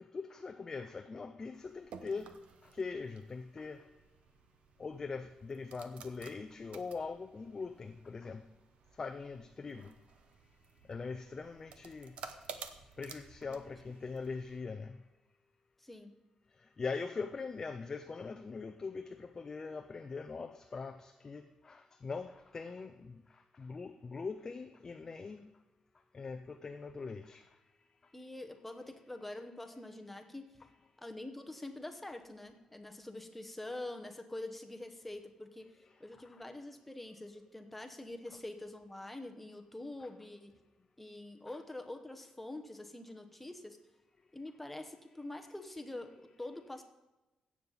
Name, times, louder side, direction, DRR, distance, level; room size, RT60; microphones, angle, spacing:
voice 1, 0.1-2.3 2.7-3.8 4.8-8.4 9.0-9.9 10.9-12.1 13.0-15.0 16.8-23.2 23.5-25.5 26.1-27.4, left 4 dB, 25° left, 7 dB, 0.4 m, -42 dB
sound 1, 1.5-14.6, right 6 dB, 70° right, 0.8 m, -54 dB
voice 2, 15.8-16.1 28.1-30.6 31.0-35.7 36.0-40.5 41.0-43.8 44.3-46.8, left 2 dB, 5° left, 4 dB, 0.9 m, -45 dB
16.5 x 7.3 x 3.9 m, 1.0 s
wide cardioid pair, 180°, 2 cm